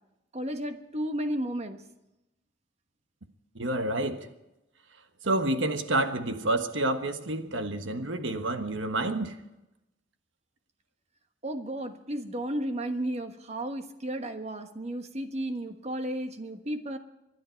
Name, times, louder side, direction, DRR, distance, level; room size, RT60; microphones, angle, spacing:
voice 1, 0.3-1.8 11.4-17.0, right 1 dB, 35° right, 1.3 m, -33 dB
voice 2, 3.5-4.3 5.2-9.3, right 2 dB, 75° right, 1.3 m, -29 dB
25.5 x 11.0 x 4.6 m
head